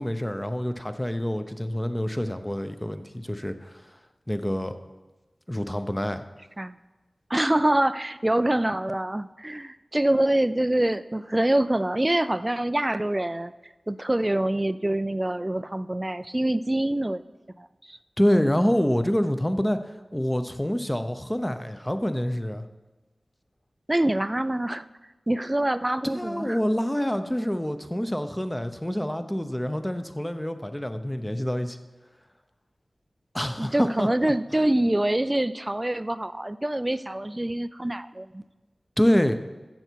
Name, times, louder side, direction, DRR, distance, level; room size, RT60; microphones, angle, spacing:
voice 1, 0.0-3.8 4.3-4.7 5.5-6.2 18.2-19.8 20.1-22.6 26.1-31.8 33.3-34.1 39.0-39.4, equal, 10° left, 9 dB, 0.8 m, -26 dB
voice 2, 7.3-13.5 13.9-17.2 17.6-18.0 23.9-24.8 25.3-26.6 33.6-38.4, right 1 dB, 25° right, 14 dB, 0.4 m, -25 dB
14.5 x 7.1 x 4.6 m, 1.2 s
wide cardioid pair, 55°, 0 cm